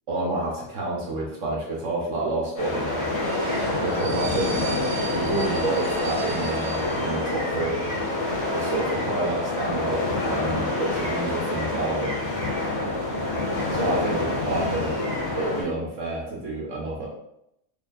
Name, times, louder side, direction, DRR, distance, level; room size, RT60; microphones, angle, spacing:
voice 1, 0.1-3.1 3.8-4.6 5.1-7.9 8.5-12.2 13.7-15.0 15.3-17.1, right 2 dB, 65° right, -3 dB, 1.1 m, -29 dB
sound 1, 2.6-15.6, left 2 dB, 55° left, 1.6 m, -27 dB
sound 2, 3.2-7.6 7.9-8.0, right 4 dB, 80° right, 1.1 m, -37 dB
4.2 x 3.2 x 2.5 m, 0.80 s
omnidirectional pair, 1.5 m